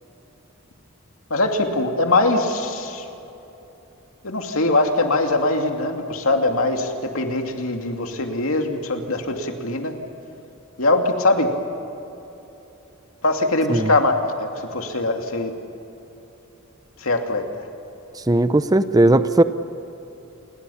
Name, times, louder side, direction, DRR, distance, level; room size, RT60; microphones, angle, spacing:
voice 1, 1.3-3.0 4.2-9.9 10.8-11.5 13.2-15.5 17.0-17.5, left 2 dB, 80° left, 4 dB, 2.5 m, -22 dB
voice 2, 18.3-19.4, right 1 dB, 20° right, 12 dB, 0.7 m, -17 dB
28.5 x 21.5 x 7.1 m, 3.0 s
head